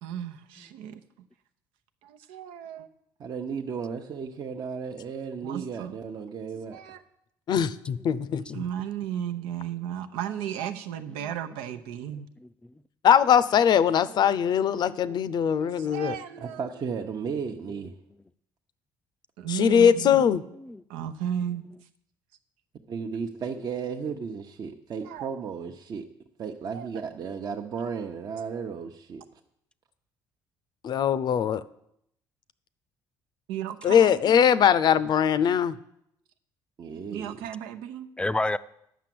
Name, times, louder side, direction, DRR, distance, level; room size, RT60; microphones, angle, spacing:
voice 1, 0.0-1.0 2.0-2.9 5.4-5.9 6.7-7.0 8.5-12.3 15.8-16.6 19.4-20.2 20.9-21.6 25.1-25.2 26.7-26.9 33.5-34.3 37.1-38.1, right 10 dB, 90° right, 8 dB, 0.8 m, -34 dB
voice 2, 3.2-6.8 16.4-17.9 22.9-26.0 26.4-29.2 36.8-37.5, right 6 dB, 50° right, 2 dB, 0.9 m, -34 dB
voice 3, 7.5-8.6 13.0-16.2 19.5-20.4 30.8-31.6 33.8-35.7, left 8 dB, 55° left, 16 dB, 0.6 m, -21 dB
voice 4, 11.2-11.6 12.1-12.5 14.9-15.2 15.5-16.4 19.9-20.8 21.7-21.8 38.2-38.6, left 2 dB, 10° left, 14 dB, 0.5 m, -34 dB
10.0 x 6.1 x 7.7 m, 0.75 s
supercardioid pair, 90°, 9 cm